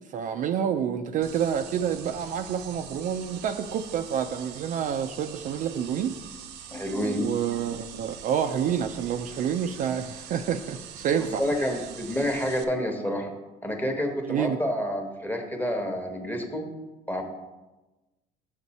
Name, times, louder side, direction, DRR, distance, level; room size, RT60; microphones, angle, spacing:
voice 1, 0.1-6.1 7.2-11.4 14.3-14.6, right 8 dB, 45° right, 7 dB, 0.4 m, -28 dB
sound 1, 1.2-12.6, right 8 dB, 70° right, 0.8 m, -43 dB
voice 2, 6.7-7.3 11.2-13.3 13.6-16.7 17.1-17.2, equal, 10° left, 3 dB, 1.0 m, -29 dB
7.1 x 6.8 x 4.1 m, 1.1 s
cardioid pair, 135°, 18 cm